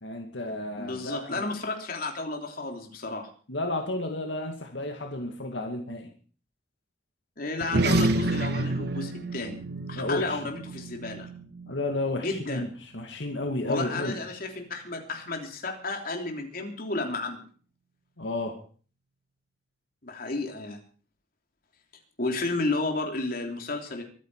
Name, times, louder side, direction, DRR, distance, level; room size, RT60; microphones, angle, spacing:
voice 1, 0.0-1.4 3.5-6.1 9.9-10.4 11.7-12.7 12.9-14.2 18.2-18.5, left 2 dB, 85° left, 3 dB, 2.2 m, -32 dB
voice 2, 0.8-3.3 7.4-9.6 9.9-11.3 12.1-12.6 13.6-17.4 20.0-20.8 22.2-24.0, left 3 dB, 55° left, 3 dB, 3.4 m, -32 dB
sound 1, 7.6-12.4, right 2 dB, 60° right, 1.2 m, -29 dB
23.5 x 9.6 x 4.9 m, 0.42 s
head